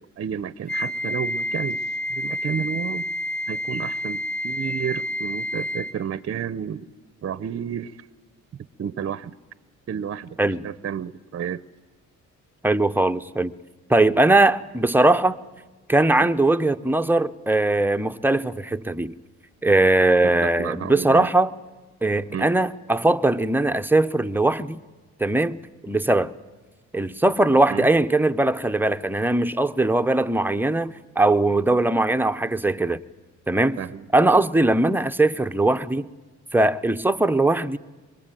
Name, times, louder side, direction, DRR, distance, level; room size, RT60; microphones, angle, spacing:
voice 1, 0.0-3.1 3.5-6.9 7.2-8.1 8.8-9.4 9.9-10.3 10.6-11.6 20.2-21.3 22.3-22.5 27.7-27.9 33.8-34.1, right 8 dB, 45° right, 0.7 m, -31 dB
Wind instrument woodwind instrument, 0.7-6.0, left 1 dB, 40° left, 3.9 m, -29 dB
voice 2, 12.6-13.5 13.9-15.4 15.9-19.1 19.6-21.5 22.0-24.8 25.2-26.3 26.9-33.0 33.5-33.8 34.1-36.1 36.5-37.8, right 2 dB, 5° right, 0.8 m, -20 dB
24.5 x 22.5 x 9.1 m
cardioid pair, 90°, 30 cm